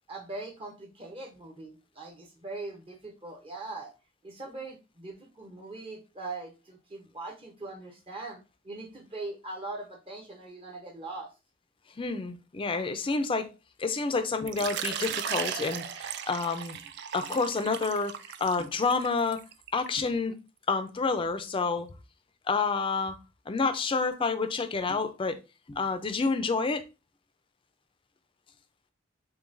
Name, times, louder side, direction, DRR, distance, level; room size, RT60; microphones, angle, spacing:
voice 1, 0.1-3.9 4.2-11.3, right 2 dB, 30° right, 0.8 m, -41 dB
voice 2, 12.0-13.5 13.8-16.8 17.1-18.1 18.4-19.4 19.7-20.4 20.7-21.9 22.5-23.2 23.5-25.4 25.7-26.8, left 4 dB, 25° left, 0.4 m, -29 dB
Water / Liquid, 14.5-20.0, right 9 dB, 60° right, 0.3 m, -36 dB
6.7 x 2.3 x 2.5 m
head